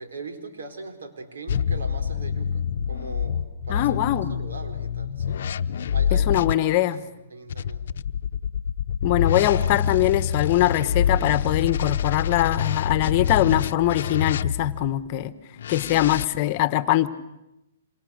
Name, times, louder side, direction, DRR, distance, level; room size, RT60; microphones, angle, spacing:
voice 1, 0.0-2.6 2.9-5.4 5.9-6.4 6.6-7.8, right 3 dB, 80° right, 5 dB, 4.8 m, -40 dB
sound 1, 1.5-6.5 7.5-14.9 15.6-16.2, left 8 dB, 65° left, 0.8 m, -26 dB
voice 2, 3.7-4.3 6.1-7.0 9.0-15.3 15.7-17.1, left 14 dB, 40° left, 14 dB, 1.3 m, -22 dB
27.5 x 25.5 x 6.6 m, 0.90 s
hypercardioid pair, 145°, 0 cm